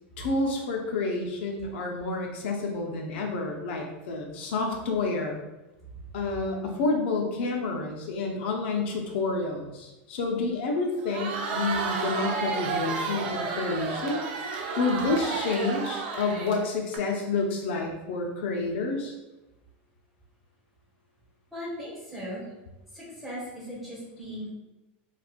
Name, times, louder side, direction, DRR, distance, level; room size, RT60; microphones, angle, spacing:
voice 1, 0.2-5.4 6.1-14.2 14.8-19.1, left 3 dB, 70° left, 2 dB, 0.5 m, -29 dB
Crowd, 11.0-17.0, right 4 dB, 65° right, 0.6 m, -32 dB
voice 2, 21.5-22.4 22.9-24.5, equal, ahead, -8 dB, 1.3 m, -38 dB
4.1 x 2.2 x 2.4 m, 1.0 s
supercardioid pair, 140°, 6 cm